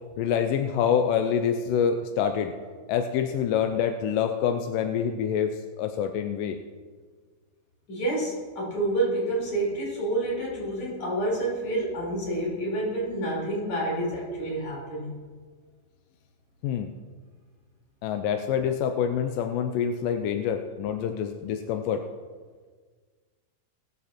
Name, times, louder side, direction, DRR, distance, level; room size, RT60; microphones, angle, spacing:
voice 1, 0.2-2.5 2.9-6.6 16.6-16.9 18.0-22.0, left 8 dB, 90° left, 6 dB, 2.3 m, -26 dB
voice 2, 7.9-15.2, right 1 dB, 55° left, -4 dB, 4.7 m, -28 dB
20.0 x 6.9 x 4.3 m, 1.5 s
omnidirectional pair, 3.7 m